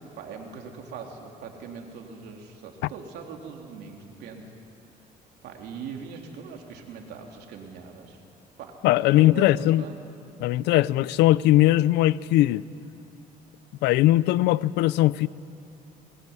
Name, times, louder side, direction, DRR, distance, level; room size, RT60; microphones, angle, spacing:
voice 1, 0.0-4.4 5.4-8.2 8.6-8.7 9.1-10.0, right 6 dB, 75° right, 2 dB, 3.5 m, -41 dB
voice 2, 8.8-9.8 10.4-12.6 13.8-15.3, left 15 dB, 90° left, 19 dB, 0.6 m, -20 dB
22.0 x 21.0 x 9.7 m, 2.6 s
cardioid pair, 110°, 17 cm